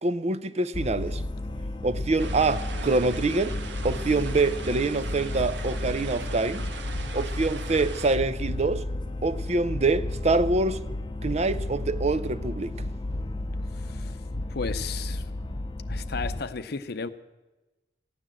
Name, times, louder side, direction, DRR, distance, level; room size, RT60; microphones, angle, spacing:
voice 1, 0.0-1.2 1.8-3.6 3.8-6.6 7.1-8.8 9.2-10.8 11.2-12.7, right 3 dB, 40° right, 0.6 m, -25 dB
sound 1, 0.7-16.4, left 1 dB, 25° left, 0.7 m, -33 dB
sound 2, 2.2-8.2, right 5 dB, 75° right, 1.2 m, -41 dB
voice 2, 14.5-15.3 15.9-17.1, left 4 dB, 65° left, 0.7 m, -34 dB
15.5 x 9.9 x 7.6 m
head